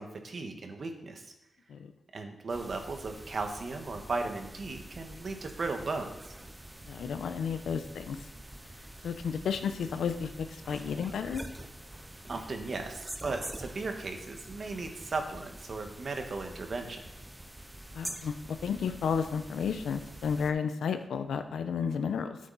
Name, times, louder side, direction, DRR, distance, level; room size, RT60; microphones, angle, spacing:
voice 1, 0.0-1.3 2.1-6.3 12.3-17.0, right 3 dB, 50° right, 4 dB, 1.6 m, -36 dB
sound 1, 2.5-20.5, right 1 dB, 10° right, 0.8 m, -46 dB
voice 2, 6.9-8.3 8.8-11.4 17.9-22.4, left 6 dB, 90° left, 9 dB, 0.9 m, -32 dB
11.5 x 8.3 x 4.2 m, 0.88 s
cardioid pair, 85°, 0 cm